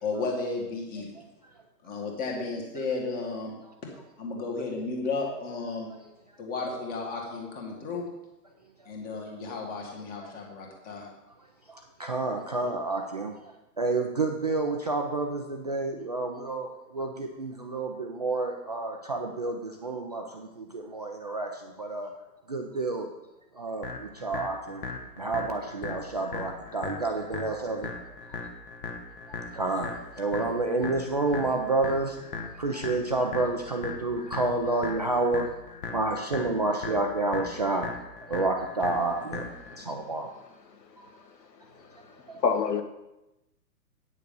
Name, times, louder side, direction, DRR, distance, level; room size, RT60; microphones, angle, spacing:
voice 1, 0.0-1.1 1.8-3.5 4.2-5.9 6.4-8.1 8.9-11.1, left 3 dB, 15° left, 1.8 m, -33 dB
voice 2, 11.7-13.3 13.8-22.1 22.5-23.1 23.5-24.8 25.2-27.9 29.5-35.6 35.9-37.9 38.3-40.3 42.3-42.4, right 2 dB, 30° right, 0.4 m, -29 dB
sound 1, 23.8-39.8, left 4 dB, 35° left, 1.1 m, -39 dB
voice 3, 41.7-42.8, left 5 dB, 80° left, 1.5 m, -29 dB
9.3 x 6.7 x 5.3 m
hypercardioid pair, 145°, 49 cm